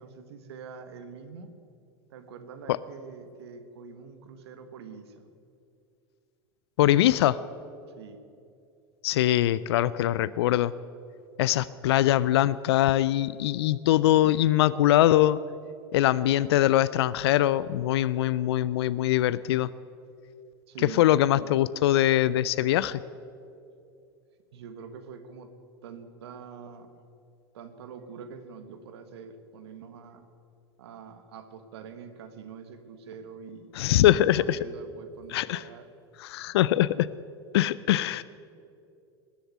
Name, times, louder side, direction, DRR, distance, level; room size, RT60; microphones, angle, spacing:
voice 1, 0.0-1.5 2.1-5.3 7.9-8.3 20.7-21.1 24.5-25.5 25.8-27.0 27.5-30.3 30.8-35.9, right 6 dB, 75° right, 8 dB, 1.5 m, -45 dB
voice 2, 6.8-7.4 9.0-10.7 11.4-15.4 15.9-19.7 20.9-23.0 33.7-34.6 35.3-35.6 36.2-37.1 37.5-38.2, left 13 dB, 70° left, 18 dB, 0.4 m, -22 dB
19.5 x 7.1 x 9.3 m, 2.6 s
hypercardioid pair, 90°, 14 cm